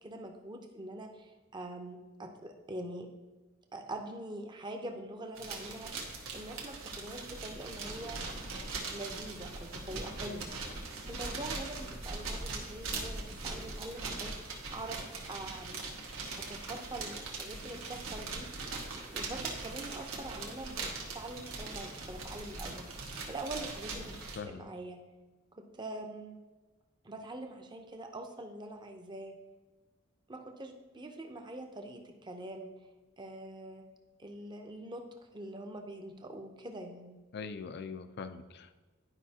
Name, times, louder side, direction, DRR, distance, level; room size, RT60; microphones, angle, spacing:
voice 1, 0.0-3.1 3.7-5.9 6.3-8.2 8.9-10.5 11.1-14.4 14.7-15.8 16.4-18.5 19.1-22.9 23.3-25.0 25.6-26.3 27.0-29.4 30.3-32.7 33.2-33.8 34.2-35.0 35.3-37.2, right 1 dB, 20° right, 3 dB, 0.7 m, -44 dB
sound 1, 5.4-24.4, right 3 dB, 75° right, 1.3 m, -41 dB
voice 2, 24.0-24.7 37.3-38.8, left 5 dB, 50° left, 10 dB, 0.5 m, -43 dB
11.0 x 5.0 x 2.8 m, 1.2 s
head